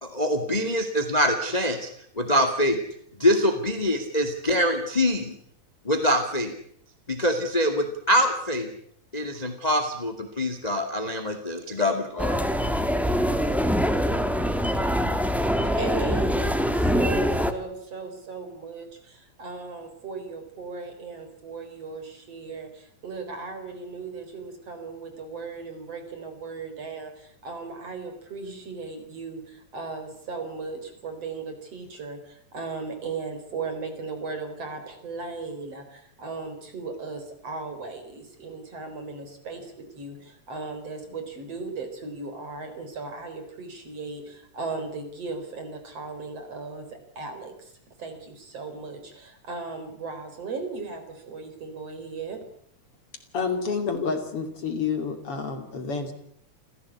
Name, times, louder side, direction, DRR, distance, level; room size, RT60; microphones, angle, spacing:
voice 1, 0.0-1.9 2.2-2.8 3.2-5.3 5.8-6.5 7.1-8.7 9.1-12.4, equal, 15° left, 8 dB, 2.0 m, -24 dB
sound 1, 12.2-17.5, equal, ahead, 0.4 m, -24 dB
voice 2, 15.8-27.1 27.4-32.2 32.5-46.9 47.2-47.5 48.0-52.4, right 4 dB, 50° right, 7 dB, 5.0 m, -37 dB
voice 3, 53.3-56.1, left 5 dB, 45° left, 6 dB, 3.5 m, -29 dB
28.5 x 16.0 x 8.4 m, 0.69 s
omnidirectional pair, 3.5 m